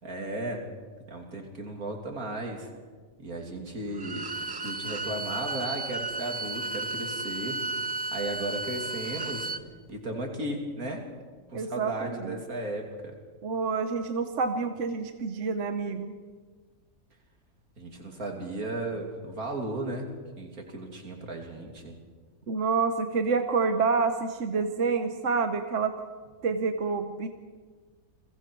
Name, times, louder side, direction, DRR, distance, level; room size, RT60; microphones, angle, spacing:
voice 1, 0.0-0.7 1.1-2.7 3.2-7.6 8.1-9.5 9.9-11.0 11.5-13.1 17.8-20.1 20.4-21.9, right 2 dB, 80° right, 2 dB, 3.3 m, -35 dB
Bowed string instrument, 3.9-9.6, right 3 dB, 40° right, 0.3 m, -34 dB
voice 2, 11.5-12.4 13.4-16.1 22.5-25.9 26.4-27.3, right 4 dB, 60° right, 7 dB, 1.3 m, -28 dB
29.5 x 22.0 x 4.7 m, 1.5 s
omnidirectional pair, 1.5 m